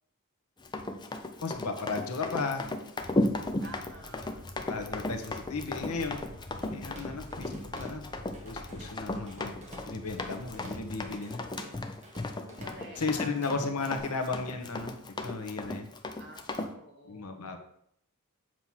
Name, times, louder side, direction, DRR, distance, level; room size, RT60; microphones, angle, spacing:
Run, 0.6-16.7, left 2 dB, 20° left, 0.5 m, -35 dB
voice 1, 1.4-2.8 4.6-6.2 6.7-8.1 8.4-9.5 9.8-11.4 13.0-15.0 15.2-15.9 17.1-17.6, left 4 dB, 85° left, 5 dB, 1.0 m, -35 dB
sound 1, 3.0-11.1, equal, 65° left, 1.1 m, -48 dB
voice 2, 3.6-4.5 12.6-13.5 16.1-17.4, equal, 50° right, -1 dB, 1.8 m, -49 dB
Drum kit / Drum, 6.6-8.0 8.3-14.0, equal, 30° right, 1.2 m, -50 dB
7.7 x 3.1 x 5.7 m, 0.70 s
head